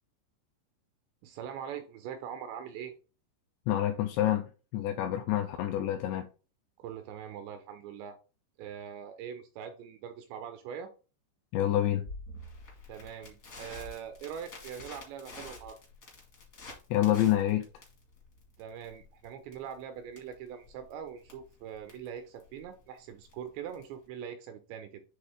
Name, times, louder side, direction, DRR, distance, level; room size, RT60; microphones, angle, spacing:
voice 1, 1.2-2.9 6.8-8.2 8.6-10.9 12.9-15.8 18.6-25.0, right 8 dB, 80° right, 2.6 m, -42 dB
voice 2, 3.7-6.3 11.5-12.1 16.9-17.7, left 12 dB, 85° left, 2.5 m, -27 dB
Crackle, 12.0-24.0, left 2 dB, 55° left, 1.0 m, -49 dB
9.5 x 3.5 x 3.6 m
omnidirectional pair, 5.5 m